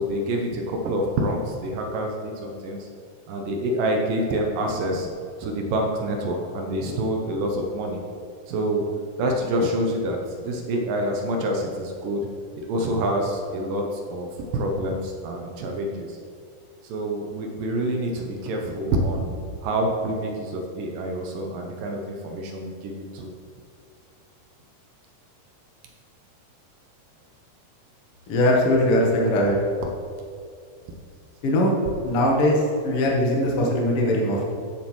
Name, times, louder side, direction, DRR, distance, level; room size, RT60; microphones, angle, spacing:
voice 1, 0.0-2.9 3.3-5.1 5.4-8.0 8.5-8.8 9.2-12.2 12.7-16.2 16.8-23.3, right 1 dB, 75° right, 1 dB, 2.1 m, -27 dB
voice 2, 28.3-29.6 31.4-31.7 32.0-34.5, left 1 dB, 80° left, -2 dB, 1.2 m, -21 dB
13.0 x 7.2 x 3.1 m, 2.3 s
omnidirectional pair, 4.7 m